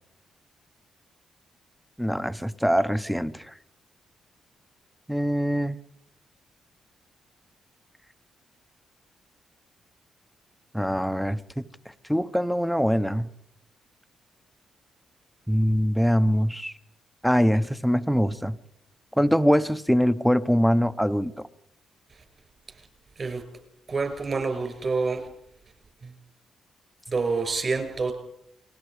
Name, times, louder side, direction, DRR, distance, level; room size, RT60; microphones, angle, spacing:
voice 1, 2.0-3.5 5.1-5.8 10.7-11.6 12.1-13.3 15.5-16.7 17.2-18.6 19.2-21.3, equal, ahead, 0.9 m, -23 dB
voice 2, 23.9-25.2 27.1-28.1, right 4 dB, 40° right, 6.0 m, -27 dB
29.0 x 20.5 x 5.0 m
cardioid pair, 105°, 0 cm